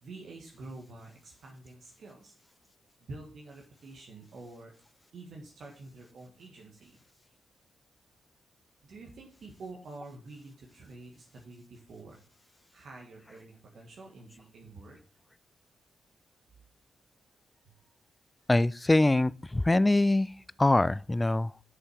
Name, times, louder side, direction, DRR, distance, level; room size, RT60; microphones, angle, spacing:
voice 1, 0.0-2.3 3.0-4.7 5.1-7.0 8.8-12.2 12.7-15.0 17.5-17.9, right 2 dB, 65° right, 1.4 m, -48 dB
voice 2, 18.5-20.3 20.6-21.5, left 2 dB, 20° left, 0.3 m, -24 dB
6.7 x 5.7 x 4.8 m
hypercardioid pair, 40°, 0 cm